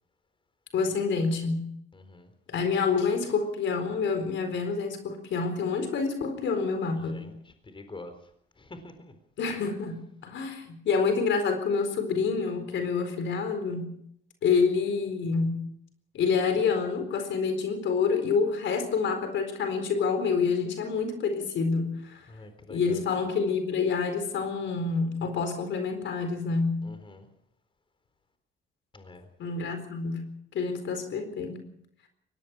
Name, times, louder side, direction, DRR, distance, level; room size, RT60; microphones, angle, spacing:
voice 1, 0.7-1.7 2.5-7.2 9.4-13.9 14.4-15.6 16.1-22.2 22.7-26.8 29.4-30.2 30.5-31.6, left 5 dB, 70° left, 7 dB, 4.2 m, -27 dB
voice 2, 1.9-2.3 7.0-8.1 8.6-9.1 22.3-23.0 26.8-27.3 28.9-29.3, left 2 dB, 25° left, 8 dB, 4.1 m, -46 dB
22.5 x 18.5 x 6.2 m, 0.71 s
cardioid pair, 90°, 20 cm